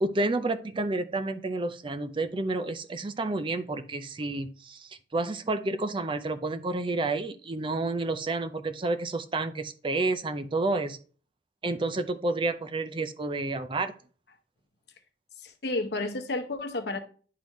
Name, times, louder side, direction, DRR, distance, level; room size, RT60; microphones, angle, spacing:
voice 1, 0.0-11.0 11.6-13.9, right 2 dB, 30° right, 10 dB, 0.5 m, -30 dB
voice 2, 15.4-17.0, left 2 dB, 60° left, 7 dB, 0.9 m, -31 dB
10.0 x 3.7 x 3.1 m, 0.41 s
head